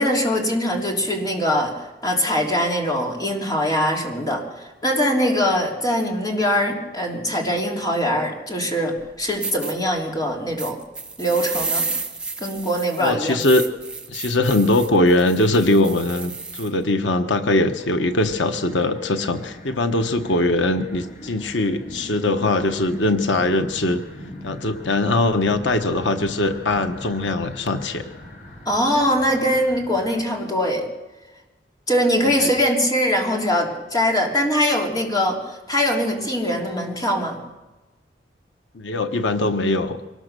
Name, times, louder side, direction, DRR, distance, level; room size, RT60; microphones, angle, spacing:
voice 1, 0.0-1.7 2.0-10.8 11.2-11.9 12.4-13.4 28.6-30.8 31.9-37.4, equal, 20° left, 0 dB, 3.3 m, -22 dB
sound 1, 9.0-9.1 9.4-9.7 10.6-16.7, right 3 dB, 5° right, 1.6 m, -31 dB
voice 2, 13.0-13.6 14.1-24.0 24.4-28.0 32.4-32.5 38.7-40.0, left 2 dB, 90° left, 7 dB, 1.2 m, -21 dB
sound 2, 17.8-30.2, left 1 dB, 45° left, 3.2 m, -40 dB
24.0 x 19.0 x 6.8 m, 1.1 s
head